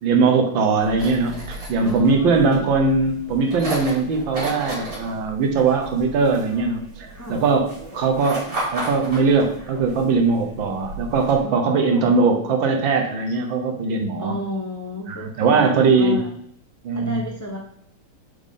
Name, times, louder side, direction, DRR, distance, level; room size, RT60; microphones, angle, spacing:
voice 1, 0.0-14.3 15.1-16.3 16.8-17.2, right 4 dB, 65° right, 4 dB, 1.6 m, -20 dB
sound 1, 0.8-11.4, right 1 dB, 40° right, 3.5 m, -34 dB
voice 2, 1.8-2.7 7.1-7.4 11.4-12.1 14.2-16.3 16.9-17.6, left 1 dB, 25° left, 0 dB, 0.3 m, -32 dB
7.9 x 5.2 x 3.7 m, 0.69 s
omnidirectional pair, 2.4 m